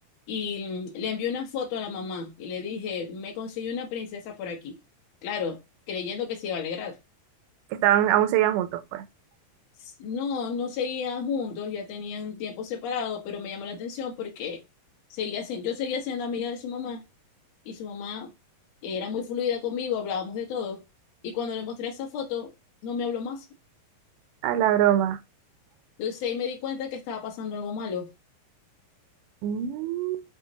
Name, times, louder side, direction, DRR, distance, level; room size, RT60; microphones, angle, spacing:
voice 1, 0.3-4.8 5.2-5.6 5.9-7.0 9.8-14.6 15.1-17.0 17.7-18.3 18.8-20.8 21.2-22.5 22.8-23.4 26.0-28.1, left 6 dB, 65° left, 1.7 m, -32 dB
voice 2, 7.7-9.0 24.4-25.2 29.4-30.2, right 12 dB, 80° right, 1.9 m, -23 dB
5.9 x 2.8 x 2.7 m
omnidirectional pair, 4.1 m